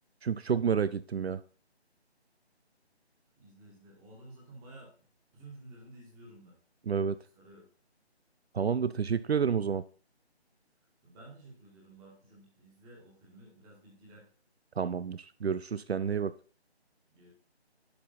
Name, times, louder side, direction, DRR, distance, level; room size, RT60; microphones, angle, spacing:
voice 1, 0.2-1.4 6.9-7.2 8.5-9.8 14.8-16.3, right 7 dB, 70° right, 16 dB, 0.5 m, -29 dB
voice 2, 3.4-4.9 5.3-6.6 7.3-7.7 11.0-14.3 17.1-17.3, right 2 dB, 10° right, -2 dB, 1.8 m, -53 dB
11.0 x 5.4 x 4.2 m, 0.41 s
figure-of-eight pair, 155°, 33 cm